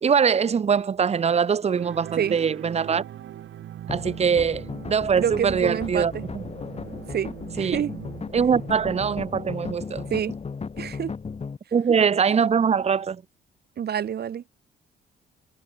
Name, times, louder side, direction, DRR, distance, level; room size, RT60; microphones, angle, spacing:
voice 1, 0.0-3.0 3.9-6.4 7.6-7.8 8.3-10.1 11.7-13.2, right 6 dB, 30° right, 0.7 m, -22 dB
sound 1, 1.7-10.2, right 11 dB, 75° right, 6.0 m, -41 dB
sound 2, 3.9-11.6, left 5 dB, 30° left, 1.7 m, -36 dB
voice 2, 5.2-6.2 7.1-7.9 10.1-10.3 10.8-11.1 13.8-14.4, right 9 dB, 55° right, 1.6 m, -27 dB
cardioid pair, 90°, 20 cm